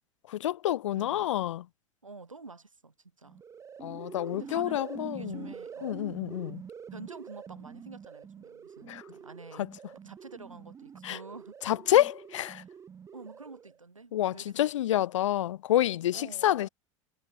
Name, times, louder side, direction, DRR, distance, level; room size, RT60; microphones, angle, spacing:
voice 1, 0.3-1.6 3.8-5.5 5.8-6.6 8.9-9.0 11.0-11.2 11.6-12.6 14.1-16.7, left 13 dB, 70° left, 0.4 m, -28 dB
voice 2, 0.9-1.3 2.0-3.4 4.3-6.2 6.9-9.7 10.0-11.5 12.5-12.8 13.1-15.0 16.1-16.7, right 3 dB, 85° right, 2.7 m, -48 dB
sound 1, 3.2-13.8, right 7 dB, 20° right, 0.5 m, -46 dB
figure-of-eight pair, 80°, 16 cm